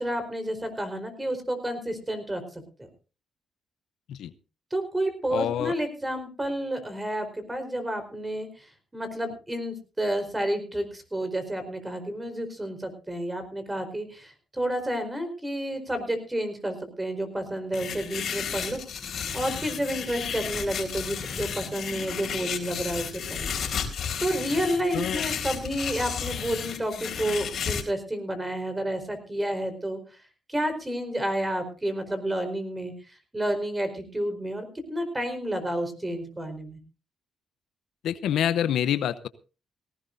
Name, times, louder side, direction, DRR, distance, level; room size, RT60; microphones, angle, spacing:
voice 1, 0.0-2.9 4.7-18.8 19.3-23.6 24.2-30.2 30.5-36.8, right 1 dB, 15° right, 8 dB, 4.5 m, -30 dB
voice 2, 5.3-5.7 24.9-25.2 38.0-39.3, left 10 dB, 75° left, 14 dB, 0.8 m, -26 dB
sound 1, 17.7-27.8, left 7 dB, 60° left, 3.9 m, -33 dB
18.0 x 17.0 x 2.7 m, 0.34 s
cardioid pair, 90°, 0 cm